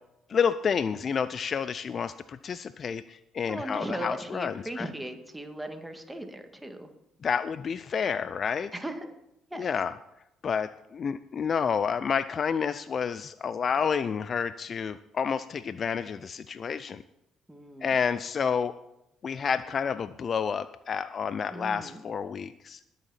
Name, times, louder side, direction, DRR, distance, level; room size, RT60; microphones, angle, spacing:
voice 1, 0.3-4.9 7.2-8.7 9.6-9.9 10.4-17.0 17.8-18.8 19.2-22.8, left 6 dB, 45° left, 15 dB, 0.5 m, -29 dB
voice 2, 3.5-6.9 8.7-9.1 9.5-9.7 17.5-18.0 21.5-22.0, right 1 dB, 5° right, 5 dB, 2.1 m, -37 dB
20.5 x 7.2 x 4.2 m, 0.84 s
hypercardioid pair, 50°, 0 cm